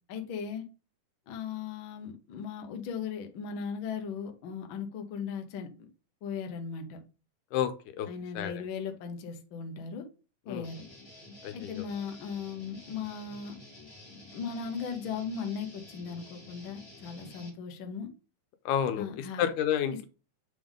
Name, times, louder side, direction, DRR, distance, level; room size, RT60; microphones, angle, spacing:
voice 1, 0.1-0.6 1.3-5.7 6.2-7.0 8.1-10.0 10.4-10.8 11.5-13.6 14.3-18.1 19.0-19.4, left 6 dB, 75° left, 4 dB, 1.1 m, -37 dB
Guitar, 10.6-17.5, left 1 dB, 15° left, 1.0 m, -51 dB
voice 2, 11.4-11.8 18.7-20.1, left 9 dB, 90° left, 9 dB, 2.2 m, -30 dB
7.6 x 3.5 x 3.7 m, 0.33 s
omnidirectional pair, 3.6 m